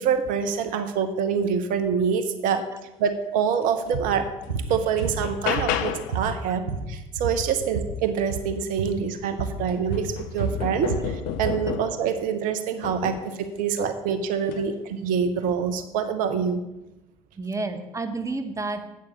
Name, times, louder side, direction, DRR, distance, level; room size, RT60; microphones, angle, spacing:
voice 1, 0.0-2.6 3.0-4.3 4.7-16.6, right 7 dB, 50° right, 9 dB, 0.8 m, -26 dB
sound 1, 3.9-4.0 4.4-6.3 8.6-8.7 9.1-12.1 12.8-13.4 14.4-14.7, left 9 dB, 55° left, 0.6 m, -32 dB
sound 2, 3.9-4.1 4.5-4.7 5.0-5.9 6.1-7.9 8.2-8.5 8.8-9.0 9.4-9.6 9.9-11.6, right 5 dB, 85° right, 0.9 m, -30 dB
voice 2, 17.4-18.8, right 3 dB, 15° right, 7 dB, 1.1 m, -31 dB
8.0 x 6.2 x 7.0 m, 0.96 s
figure-of-eight pair, 60°, 17 cm